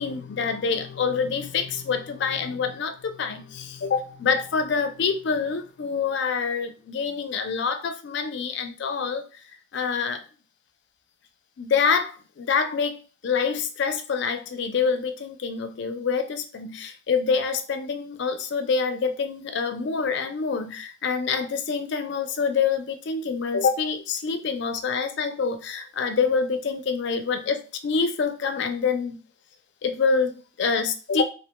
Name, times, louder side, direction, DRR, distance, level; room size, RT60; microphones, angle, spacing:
voice 1, 0.0-9.2 9.7-10.2 11.6-29.2 29.8-31.2, left 5 dB, 60° left, 9 dB, 0.4 m, -26 dB
2.8 x 2.1 x 2.9 m, 0.35 s
head